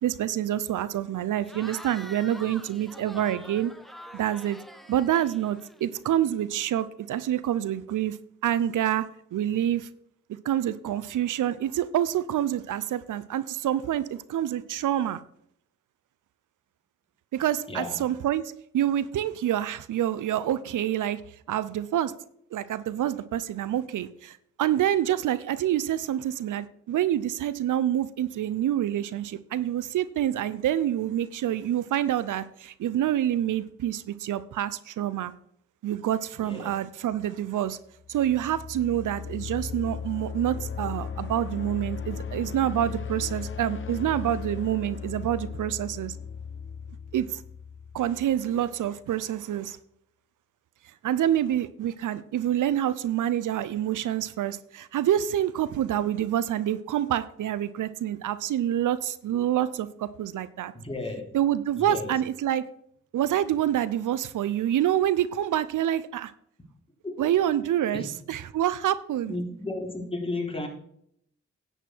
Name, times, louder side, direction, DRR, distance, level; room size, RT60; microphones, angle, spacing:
voice 1, 0.0-3.7 4.1-4.6 4.9-8.2 8.4-9.1 9.3-9.9 10.4-15.2 17.3-18.4 18.7-21.2 21.5-22.1 22.5-35.3 35.8-37.8 38.1-46.2 47.1-47.4 47.9-49.8 51.0-60.7 61.3-62.6 63.1-66.3 67.2-69.3, right 11 dB, 85° right, 0.6 m, -27 dB
Cheering / Crowd, 1.4-6.0, equal, ahead, 1.4 m, -45 dB
voice 2, 17.7-18.0 36.4-36.7 60.7-61.2 61.8-62.2 67.0-67.4 67.9-68.1 69.3-70.7, left 2 dB, 20° left, 3.3 m, -34 dB
sound 1, 38.0-48.8, left 6 dB, 40° left, 0.9 m, -37 dB
11.0 x 8.9 x 4.5 m
cardioid pair, 50°, 30 cm